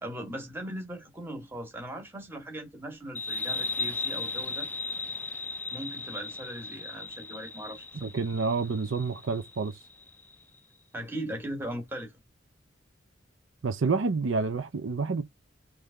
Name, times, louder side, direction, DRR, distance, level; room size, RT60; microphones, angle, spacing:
voice 1, 0.0-4.7 5.7-8.1 10.9-12.1, right 1 dB, 10° right, 1.3 m, -39 dB
sound 1, 3.2-10.4, left 3 dB, 10° left, 0.3 m, -36 dB
voice 2, 7.9-9.8 13.6-15.2, right 4 dB, 70° right, 0.5 m, -28 dB
3.6 x 3.3 x 3.7 m
head